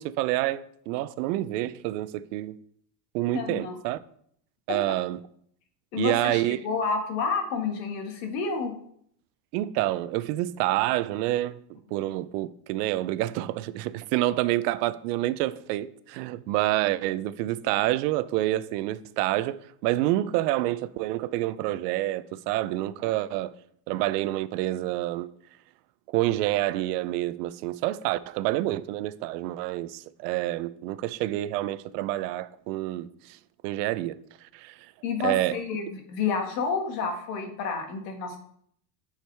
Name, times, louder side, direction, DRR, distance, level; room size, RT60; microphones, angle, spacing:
voice 1, 0.0-2.5 3.1-4.0 4.7-5.2 6.0-6.6 9.5-23.5 23.9-25.3 26.1-33.4 33.6-34.2 34.5-34.7 35.2-35.6, right 15 dB, 75° right, 0.5 m, -28 dB
voice 2, 3.3-3.8 4.7-4.8 5.9-8.7 35.0-38.4, left 5 dB, 80° left, 1.7 m, -30 dB
9.2 x 4.9 x 3.3 m
cardioid pair, 175°, 48 cm